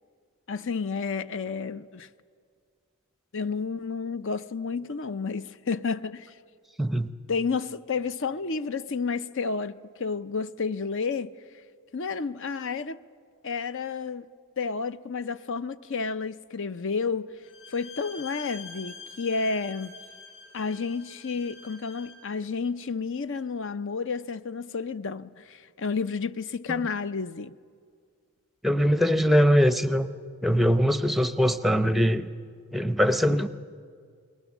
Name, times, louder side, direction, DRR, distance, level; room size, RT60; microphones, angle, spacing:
voice 1, 0.5-2.1 3.3-6.3 7.3-11.3 11.9-13.0 13.4-14.3 14.6-17.3 17.7-20.0 20.5-27.5, left 5 dB, 60° left, 0.6 m, -31 dB
voice 2, 6.8-7.1 26.7-26.9 28.6-30.1 30.4-32.3 32.7-33.5, equal, ahead, 0.7 m, -22 dB
Bowed string instrument, 17.4-22.3, left 4 dB, 30° left, 4.5 m, -46 dB
29.0 x 21.0 x 7.2 m
head